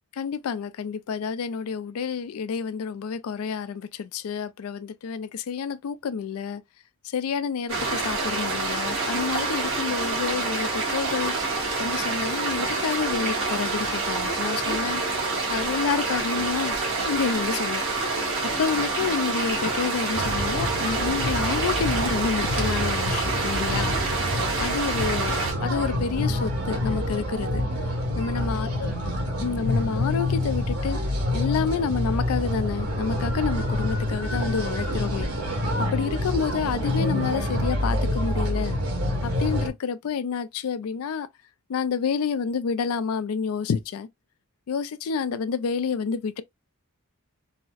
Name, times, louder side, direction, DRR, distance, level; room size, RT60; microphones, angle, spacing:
voice 1, 0.2-6.6 7.0-11.3 11.8-16.8 17.0-17.8 18.4-23.9 24.6-25.4 25.6-27.6 28.1-28.9 29.4-31.0 31.3-35.3 35.8-38.8 39.2-41.3 41.7-44.1 44.7-46.4, left 6 dB, 80° left, 0.3 m, -29 dB
sound 1, 7.7-25.5, right 3 dB, 70° right, 1.7 m, -27 dB
sound 2, 20.1-39.7, left 1 dB, 90° right, 1.3 m, -27 dB
4.0 x 2.0 x 2.3 m
head